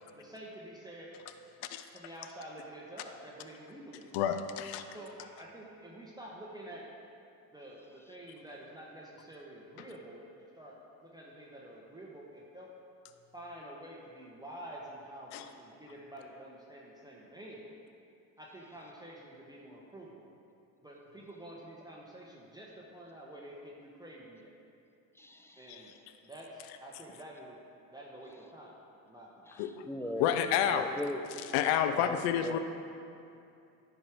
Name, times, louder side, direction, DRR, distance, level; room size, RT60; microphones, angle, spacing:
voice 1, 0.1-1.1 1.9-4.1 4.9-6.9 7.5-10.2 10.5-12.7 13.3-17.7 18.4-20.3 20.8-24.5 25.6-25.9 26.2-27.6 27.9-28.7 29.0-29.5, right 1 dB, 10° right, -4 dB, 1.1 m, -48 dB
voice 2, 4.1-4.8 15.3-15.5 25.7-25.9 29.6-29.9 30.2-30.9 31.5-32.6, left 9 dB, 75° left, 9 dB, 0.6 m, -29 dB
voice 3, 25.2-25.9 29.5-31.5 31.9-32.6, left 1 dB, 5° left, 5 dB, 0.5 m, -39 dB
10.5 x 4.9 x 4.6 m, 2.6 s
supercardioid pair, 80°, 42 cm